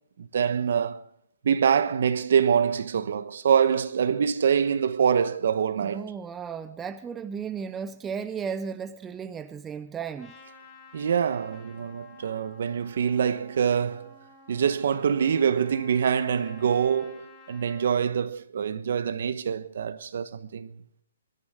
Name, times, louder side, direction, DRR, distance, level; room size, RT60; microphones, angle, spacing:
voice 1, 0.2-1.0 1.4-6.1 10.9-14.2 14.5-20.7, right 7 dB, 55° right, 1.2 m, -25 dB
voice 2, 5.8-10.4, right 6 dB, 10° right, 0.5 m, -35 dB
Trumpet, 10.2-18.0, left 4 dB, 15° left, 2.7 m, -51 dB
21.0 x 13.0 x 3.7 m
hypercardioid pair, 165°, 0 cm